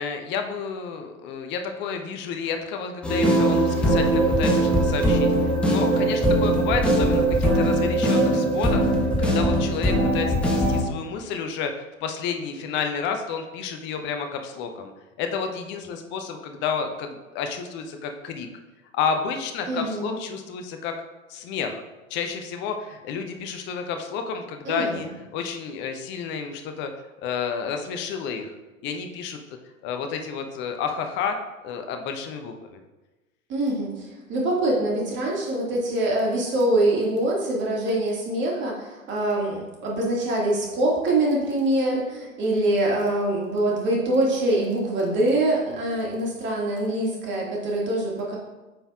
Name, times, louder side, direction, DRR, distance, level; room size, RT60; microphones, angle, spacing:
voice 1, 0.0-8.9 9.2-14.9 15.2-18.5 18.9-20.9 21.3-21.8 22.1-25.1 25.3-26.9 27.2-28.5 28.8-29.4 29.8-31.4 31.6-32.8, left 6 dB, 25° left, 5 dB, 0.6 m, -30 dB
sound 1, 3.0-10.8, right 1 dB, ahead, 1.0 m, -21 dB
voice 2, 19.7-20.2 24.6-25.1 33.5-48.4, right 1 dB, 25° right, -3 dB, 2.0 m, -24 dB
8.7 x 5.5 x 2.4 m, 1.1 s
figure-of-eight pair, 95°, 42 cm